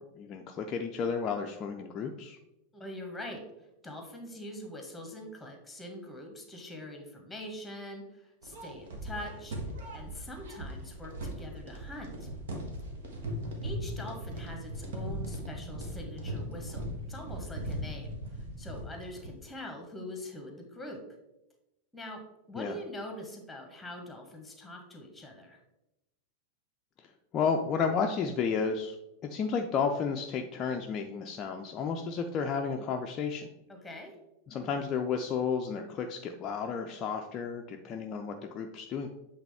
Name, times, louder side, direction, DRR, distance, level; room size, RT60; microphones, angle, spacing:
voice 1, 0.2-2.4 22.6-22.8 27.3-29.0 29.3-33.5 34.5-39.1, left 6 dB, 30° left, 3 dB, 0.5 m, -32 dB
voice 2, 2.7-3.4 3.8-9.5 9.9-12.3 13.6-21.0 21.9-22.2 22.5-25.6 33.7-34.1, left 1 dB, 5° left, 3 dB, 1.4 m, -43 dB
sound 1, 8.4-19.4, equal, 60° right, 1.2 m, -39 dB
8.0 x 3.4 x 3.5 m, 0.91 s
figure-of-eight pair, 90°, 0 cm